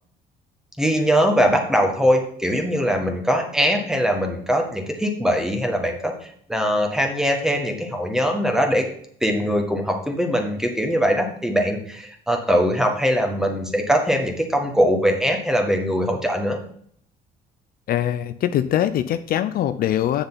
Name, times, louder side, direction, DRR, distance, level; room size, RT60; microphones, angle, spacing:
voice 1, 0.8-8.8 9.2-16.6, equal, 5° right, 3 dB, 1.7 m, -21 dB
voice 2, 17.9-20.2, left 11 dB, 60° left, 11 dB, 0.6 m, -22 dB
7.9 x 6.7 x 4.1 m, 0.64 s
cardioid pair, 110°, 17 cm